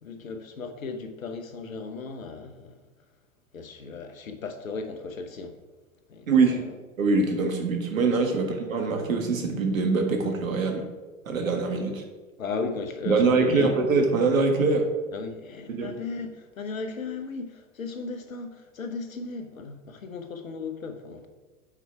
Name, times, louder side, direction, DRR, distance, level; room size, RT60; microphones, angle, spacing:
voice 1, 0.0-2.8 3.5-5.5 6.1-6.3 12.4-13.9 15.1-16.3 16.6-21.3, left 4 dB, 85° left, 1.0 m, -35 dB
voice 2, 6.3-6.7 7.0-10.8 11.2-12.0 13.0-14.9 15.7-15.9, right 4 dB, 80° right, 1.5 m, -23 dB
8.0 x 4.7 x 4.6 m
hypercardioid pair, 95°, 40 cm